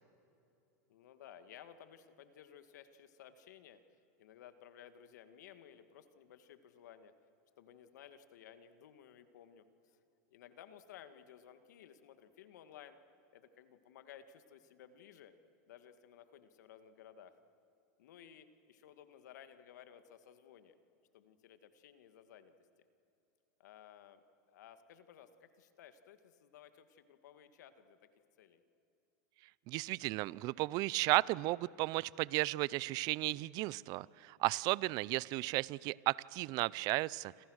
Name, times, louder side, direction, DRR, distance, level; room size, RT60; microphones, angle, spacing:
voice 1, 0.9-3.8 4.2-7.1 7.6-10.0 10.3-13.0 13.3-15.3 15.7-17.4 18.0-20.7 21.1-22.5 23.6-24.2 24.5-28.0 28.4-28.6, left 9 dB, 80° left, 10 dB, 1.9 m, -57 dB
voice 2, 29.7-37.4, right 20 dB, 45° right, 23 dB, 0.5 m, -34 dB
27.5 x 27.5 x 6.4 m, 2.8 s
supercardioid pair, 135°, 9 cm